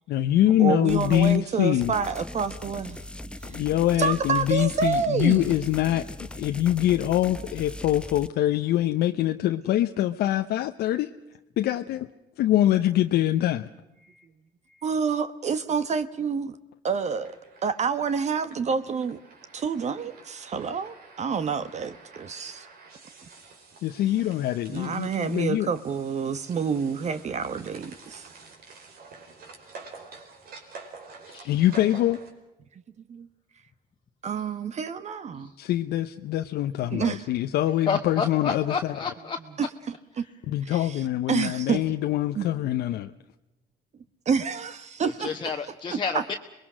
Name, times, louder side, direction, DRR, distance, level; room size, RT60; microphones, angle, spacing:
voice 1, 0.1-1.9 3.5-11.1 11.6-12.1 12.4-13.7 23.8-25.7 31.4-32.2 35.6-38.9 40.5-43.1, left 13 dB, 75° left, 0.8 m, -24 dB
voice 2, 0.6-3.0 3.5-3.6 4.0-5.5 14.8-16.6 16.8-17.3 17.6-19.2 19.5-22.7 24.7-28.3 33.1-33.3 34.2-35.5 36.9-37.2 39.6-39.7 40.2-40.3 40.7-41.0 41.3-41.8 42.4-42.5 44.3-45.3, right 6 dB, 40° right, 1.2 m, -28 dB
sound 1, 0.9-1.4 1.8-8.3, left 1 dB, 5° left, 0.8 m, -40 dB
sound 2, 17.0-32.3, right 4 dB, 65° right, 4.8 m, -48 dB
voice 3, 31.3-31.6 35.4-35.5 37.9-39.7 40.2-40.3 45.0-46.3, left 5 dB, 30° left, 1.4 m, -31 dB
26.5 x 21.5 x 6.2 m
cardioid pair, 110°, 17 cm